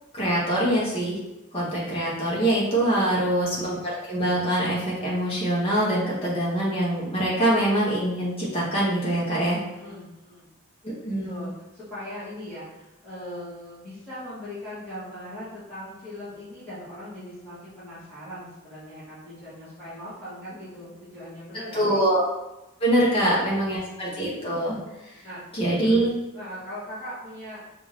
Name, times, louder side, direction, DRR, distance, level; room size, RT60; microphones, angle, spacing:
voice 1, 0.1-1.2 1.5-3.8 4.0-9.6 11.0-11.5 21.7-22.2 22.8-24.8 25.5-26.1, right 1 dB, 25° left, -6 dB, 1.2 m, -24 dB
voice 2, 9.7-10.5 11.2-22.0 23.1-24.2 25.2-25.4 25.8-27.6, left 1 dB, 5° left, -14 dB, 1.4 m, -40 dB
4.8 x 2.6 x 3.2 m, 0.98 s
head